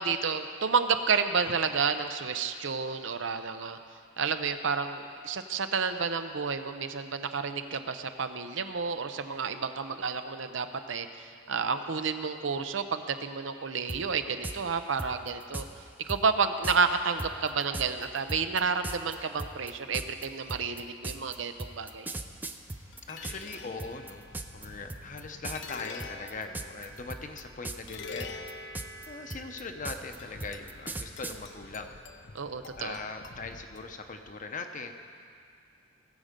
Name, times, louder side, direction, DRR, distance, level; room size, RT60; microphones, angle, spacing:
voice 1, 0.0-3.8 4.2-15.6 16.0-22.1 32.3-33.0, right 5 dB, 80° right, 9 dB, 0.7 m, -30 dB
sound 1, 13.9-14.0 14.4-14.6 15.0-15.7 16.1-16.2 16.6-16.8 17.2-23.5 23.8-24.6 24.9-25.2 25.4-25.7 26.0-26.8 27.1-27.9 28.2-31.4, right 2 dB, 10° right, 0.4 m, -37 dB
sound 2, 22.2-34.3, left 3 dB, 70° left, 0.8 m, -46 dB
voice 2, 23.1-24.3 24.5-28.4 29.1-32.0 32.8-34.9, left 4 dB, 40° left, 6 dB, 0.8 m, -40 dB
19.5 x 7.6 x 5.2 m, 2.3 s
head